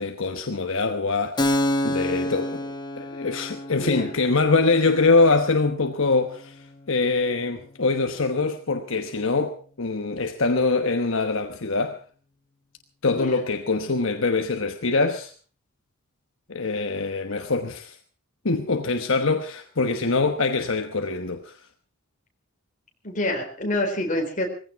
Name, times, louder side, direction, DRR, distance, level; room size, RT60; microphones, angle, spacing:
voice 1, 0.0-12.0 13.0-15.3 16.5-18.0 18.4-21.6, left 3 dB, 65° left, 1.1 m, -24 dB
Keyboard (musical), 1.4-8.7, left 1 dB, 20° left, 1.1 m, -31 dB
voice 2, 3.8-4.1 13.1-13.4 23.0-24.5, left 1 dB, 35° left, 4.2 m, -27 dB
19.5 x 15.5 x 4.7 m
head